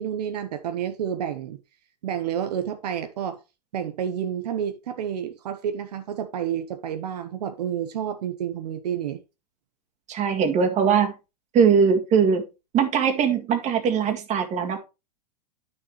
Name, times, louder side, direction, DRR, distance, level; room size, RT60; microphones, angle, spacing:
voice 1, 0.0-1.6 2.0-3.4 3.7-9.2, right 9 dB, 80° right, 1.0 m, -29 dB
voice 2, 10.1-11.1 11.5-12.4 12.7-14.8, right 6 dB, 35° right, 2.0 m, -21 dB
9.7 x 6.8 x 3.2 m
hypercardioid pair, 115°, 20 cm